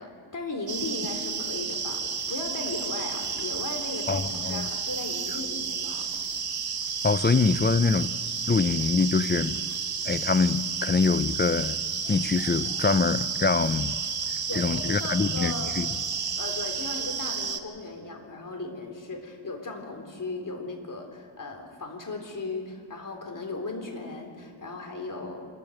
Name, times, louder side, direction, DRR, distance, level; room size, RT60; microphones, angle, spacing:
voice 1, 0.0-6.1 14.5-15.7 16.3-25.5, left 2 dB, 40° left, 3.8 m, -37 dB
sound 1, 0.7-17.6, right 6 dB, 45° right, 1.4 m, -31 dB
voice 2, 4.1-4.7 7.0-8.1 8.5-9.6 10.0-11.8 12.1-13.9 14.5-15.9, left 4 dB, 20° left, 0.4 m, -24 dB
27.0 x 14.0 x 7.9 m
wide cardioid pair, 125°, 49 cm